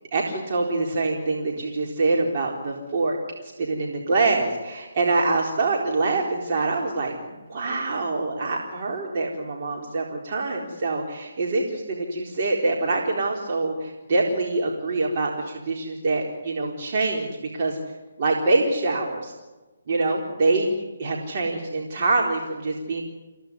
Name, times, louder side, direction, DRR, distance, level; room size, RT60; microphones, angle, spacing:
voice 1, 0.1-17.8 18.2-19.3 19.9-20.7 21.0-23.0, right 3 dB, 45° right, -1 dB, 4.1 m, -25 dB
29.0 x 16.5 x 9.8 m, 1.2 s
figure-of-eight pair, 150°, 0 cm